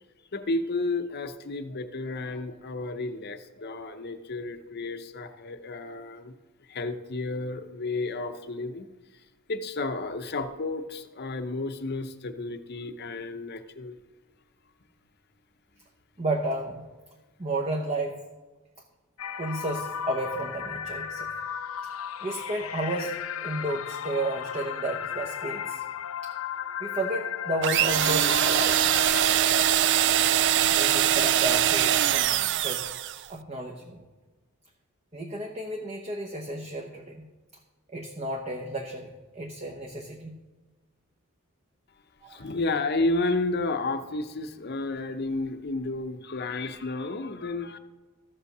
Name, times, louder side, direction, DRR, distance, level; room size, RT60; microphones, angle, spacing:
voice 1, 0.3-6.3 6.6-8.9 9.1-14.0 42.3-47.8, left 2 dB, 50° left, 8 dB, 0.8 m, -32 dB
voice 2, 16.2-16.8 17.4-18.2 19.4-21.3 22.2-25.8 26.2-26.3 26.8-28.8 30.7-32.9 33.3-34.0 35.1-37.3 37.9-40.3 42.2-42.4, right 1 dB, 30° right, 1 dB, 0.9 m, -32 dB
sound 1, 19.2-29.3, left 9 dB, 85° left, 0.6 m, -35 dB
sound 2, 27.6-33.2, right 11 dB, 60° right, 0.4 m, -23 dB
13.5 x 5.5 x 6.6 m, 1.2 s
head